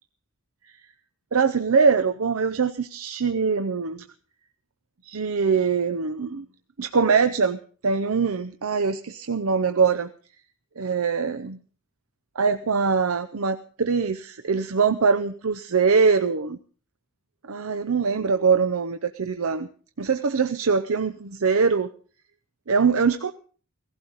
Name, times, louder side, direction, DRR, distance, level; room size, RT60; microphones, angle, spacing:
voice 1, 1.3-4.0 5.1-6.5 6.8-10.1 10.8-11.6 12.4-16.6 17.5-19.7 20.0-21.9 22.7-23.3, right 5 dB, 75° right, 9 dB, 0.7 m, -23 dB
17.0 x 15.5 x 4.0 m, 0.41 s
head